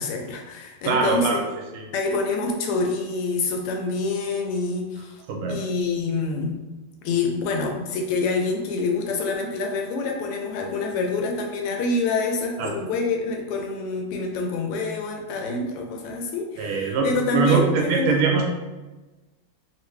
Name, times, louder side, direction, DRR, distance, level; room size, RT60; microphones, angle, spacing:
voice 1, 0.0-1.4 1.9-5.1 5.5-6.6 7.0-18.2, left 3 dB, 90° left, 2 dB, 1.5 m, -26 dB
voice 2, 0.8-1.4 1.7-1.8 5.3-5.6 12.6-12.7 16.6-18.5, right 5 dB, 90° right, 1 dB, 1.5 m, -22 dB
3.5 x 2.5 x 3.1 m, 1.2 s
omnidirectional pair, 2.4 m